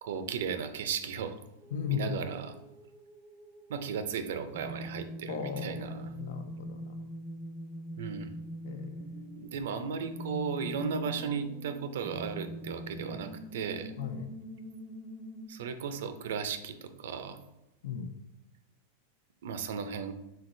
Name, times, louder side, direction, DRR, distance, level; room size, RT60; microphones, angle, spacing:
voice 1, 0.0-1.4 1.9-2.6 3.7-6.1 8.0-8.3 9.4-13.9 15.5-17.4 19.4-20.1, right 6 dB, 80° right, 9 dB, 0.5 m, -35 dB
sound 1, 1.6-15.5, right 1 dB, 5° right, 0.4 m, -44 dB
voice 2, 1.7-2.1 5.3-7.0 8.6-8.9 14.0-14.3 17.8-18.1, left 8 dB, 75° left, 7 dB, 0.5 m, -36 dB
4.4 x 3.8 x 2.6 m, 0.94 s
supercardioid pair, 150°, 0 cm